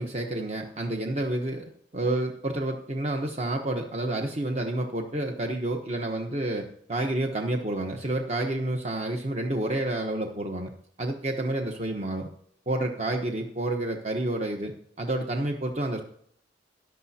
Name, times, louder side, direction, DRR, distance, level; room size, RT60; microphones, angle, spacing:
voice 1, 0.0-1.6 1.9-10.7 11.0-12.3 12.7-16.0, right 1 dB, 35° right, 2 dB, 1.0 m, -29 dB
14.5 x 10.5 x 2.8 m, 0.66 s
head